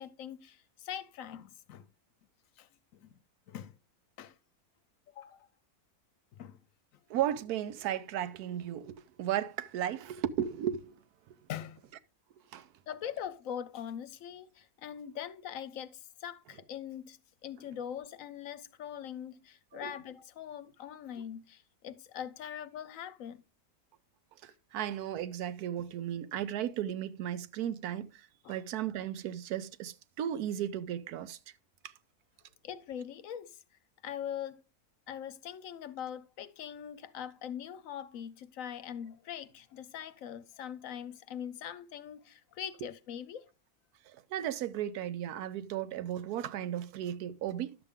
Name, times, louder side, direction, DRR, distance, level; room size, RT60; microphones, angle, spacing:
voice 1, 0.0-1.9 2.6-3.1 3.5-3.8 4.2-4.3 5.2-5.5 6.3-6.6 11.5-11.8 12.9-23.4 28.4-28.6 32.6-33.5 34.0-34.6 35.1-43.5, left 9 dB, 70° left, 0.9 m, -42 dB
voice 2, 7.1-11.0 11.3-11.4 12.5-12.7 19.7-19.9 24.4-31.4 31.8-31.9 44.0-47.8, right 10 dB, 90° right, 1.2 m, -35 dB
11.0 x 6.9 x 3.5 m
omnidirectional pair, 1.6 m